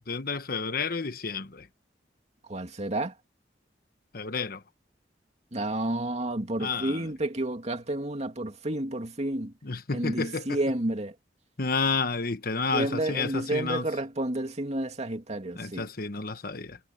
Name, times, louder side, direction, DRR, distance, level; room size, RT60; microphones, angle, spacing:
voice 1, 0.1-1.7 4.1-4.6 6.6-7.1 9.6-10.6 11.6-13.9 15.5-16.8, left 4 dB, 55° left, 1.3 m, -30 dB
voice 2, 2.5-3.1 5.5-9.5 9.9-11.1 12.7-15.9, right 1 dB, 40° right, 2.5 m, -30 dB
head